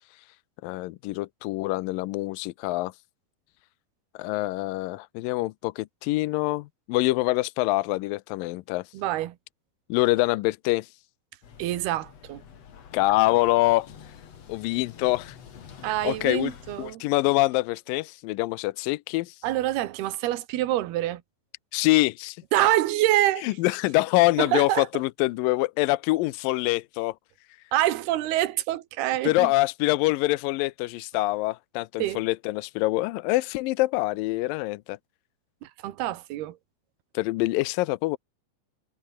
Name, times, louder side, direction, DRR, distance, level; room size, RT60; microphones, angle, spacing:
voice 1, 0.6-2.9 4.1-8.9 9.9-10.9 12.9-13.9 14.5-15.4 16.0-16.5 16.8-19.4 21.7-22.4 23.4-27.2 29.2-35.0 37.1-38.2, left 19 dB, 80° left, 2.1 m, -25 dB
voice 2, 8.9-9.4 11.6-12.4 15.8-17.0 19.4-21.2 22.5-23.5 24.4-24.9 27.7-29.5 32.0-32.2 35.6-36.6, right 14 dB, 85° right, 3.3 m, -26 dB
sound 1, 11.4-17.0, left 7 dB, 45° left, 3.0 m, -48 dB
omnidirectional pair, 4.5 m